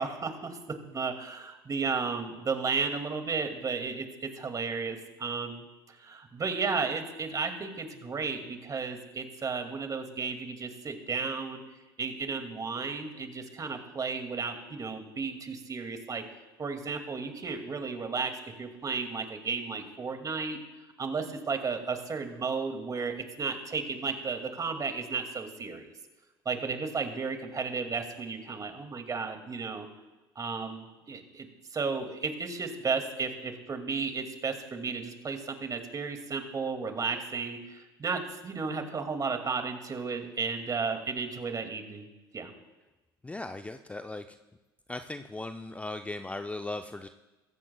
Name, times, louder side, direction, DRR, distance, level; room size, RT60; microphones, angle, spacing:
voice 1, 0.0-11.6 12.0-16.2 16.6-20.6 21.0-25.9 26.5-29.9 30.4-31.5 31.7-42.1 42.3-42.5, right 4 dB, 30° right, 6 dB, 2.3 m, -33 dB
voice 2, 43.2-44.4 44.9-47.1, left 2 dB, 10° left, 8 dB, 0.6 m, -38 dB
23.0 x 14.5 x 2.3 m, 1.1 s
figure-of-eight pair, 65°, 13 cm